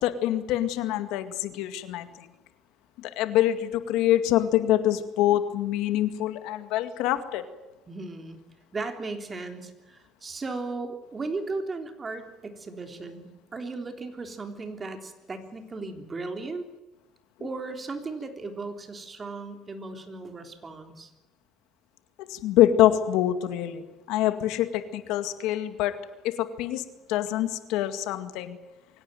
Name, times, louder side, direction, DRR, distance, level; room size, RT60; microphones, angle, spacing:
voice 1, 0.0-2.3 3.0-7.4 22.3-25.9 26.2-26.8 27.1-28.6, left 12 dB, 85° left, 10 dB, 2.1 m, -25 dB
voice 2, 7.9-8.4 8.7-16.7 17.4-21.1, right 3 dB, 25° right, 6 dB, 3.6 m, -36 dB
24.0 x 17.0 x 9.3 m, 1.0 s
cardioid pair, 110°, 0 cm